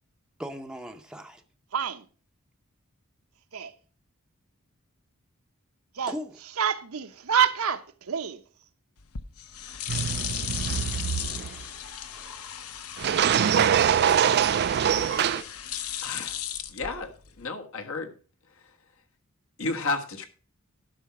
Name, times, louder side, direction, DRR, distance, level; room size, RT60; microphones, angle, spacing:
voice 1, 0.4-1.4 6.1-6.4 11.3-12.6 14.8-15.5, equal, 5° right, 0.7 m, -41 dB
voice 2, 1.7-2.0 3.5-3.7 5.9-6.1 6.6-8.4, right 8 dB, 75° right, 0.8 m, -27 dB
sound 1, 9.0-17.4, left 10 dB, 85° left, 0.9 m, -36 dB
sound 2, 9.9-11.6 13.0-15.4, right 8 dB, 50° right, 0.4 m, -24 dB
voice 3, 16.0-16.4 16.7-17.1 17.4-18.1 19.6-20.3, left 3 dB, 65° left, 1.4 m, -31 dB
11.5 x 5.7 x 5.9 m
head